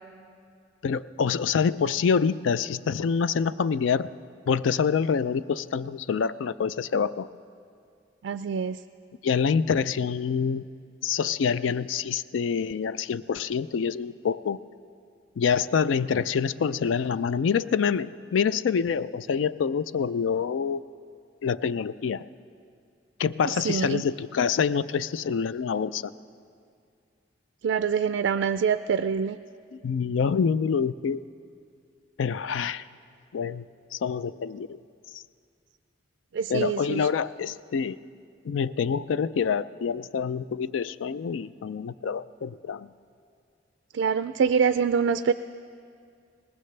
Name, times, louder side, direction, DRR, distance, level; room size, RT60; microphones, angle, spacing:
voice 1, 0.8-4.1 4.5-7.3 9.2-10.6 11.0-14.6 15.4-20.8 21.4-22.3 23.2-26.1 29.7-31.3 32.2-32.8 33.3-33.6 33.9-34.8 36.5-38.0 38.4-42.9, left 6 dB, 90° left, 16 dB, 0.4 m, -26 dB
voice 2, 8.2-8.8 23.4-24.0 27.6-29.4 36.3-37.1 43.9-45.3, right 6 dB, 75° right, 11 dB, 0.3 m, -25 dB
22.5 x 19.5 x 3.3 m, 2.3 s
head